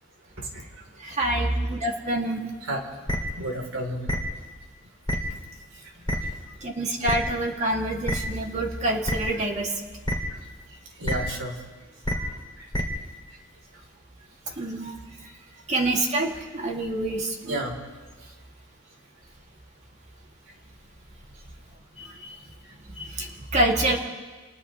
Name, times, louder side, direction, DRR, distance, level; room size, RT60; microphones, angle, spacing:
voice 1, 1.0-2.5 6.6-9.7 14.6-14.9 15.7-17.6 22.0-22.1 23.0-24.0, right 1 dB, 35° right, 0 dB, 2.4 m, -26 dB
sound 1, 3.1-3.2 4.1-4.2 5.1-5.2 6.1-6.2 7.1-7.2 8.1-8.2 9.1-9.2 10.1-10.2 11.0-11.1 12.0-12.1 12.7-12.8, equal, 20° left, 2.5 m, -25 dB
voice 2, 3.4-4.1 11.0-11.6 14.7-14.8 16.4-16.5 17.5-17.7, right 1 dB, 90° right, 1 dB, 3.6 m, -31 dB
30.0 x 28.5 x 3.2 m, 1.3 s
head